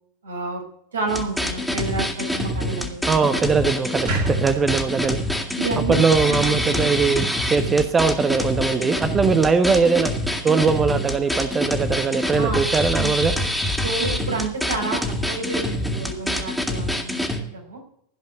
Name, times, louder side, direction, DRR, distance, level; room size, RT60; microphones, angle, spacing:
voice 1, 0.2-0.6 0.9-3.1 5.6-6.0 6.3-6.9 12.4-12.6 13.0-13.1 13.8-17.8, right 3 dB, 80° right, 1 dB, 4.6 m, -29 dB
sound 1, 1.1-17.4, left 1 dB, ahead, 2.6 m, -25 dB
voice 2, 3.1-5.5 5.9-10.1 10.4-13.3, right 5 dB, 20° right, 9 dB, 1.1 m, -21 dB
sound 2, 4.1-7.2, right 2 dB, 60° right, 5.0 m, -31 dB
16.0 x 5.4 x 9.5 m, 0.71 s
hypercardioid pair, 90°, 0 cm